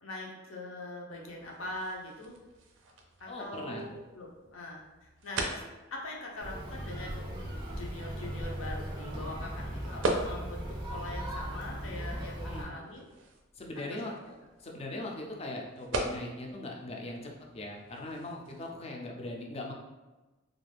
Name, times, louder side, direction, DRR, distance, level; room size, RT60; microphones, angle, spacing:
voice 1, 0.0-2.3 3.2-5.6 5.9-13.1 13.9-14.0, left 1 dB, 80° left, -2 dB, 0.6 m, -42 dB
sound 1, 1.1-18.8, right 2 dB, 70° right, 0.4 m, -42 dB
voice 2, 3.3-3.9 12.4-12.7 13.6-19.7, left 2 dB, 30° left, 0 dB, 0.4 m, -40 dB
sound 2, 6.4-12.6, equal, 25° right, 0.6 m, -38 dB
2.4 x 2.2 x 3.3 m, 1.1 s
head